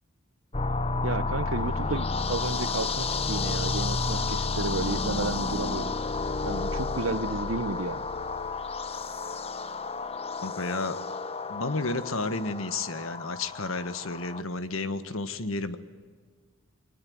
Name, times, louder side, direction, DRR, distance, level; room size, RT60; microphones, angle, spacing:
sound 1, 0.5-14.4, left 3 dB, 30° left, 0.9 m, -31 dB
voice 1, 1.0-5.9 6.4-8.0, right 3 dB, 70° right, 15 dB, 1.0 m, -32 dB
voice 2, 10.4-11.0 11.5-15.8, left 3 dB, 75° left, 12 dB, 1.5 m, -31 dB
23.0 x 20.0 x 9.6 m, 1.5 s
head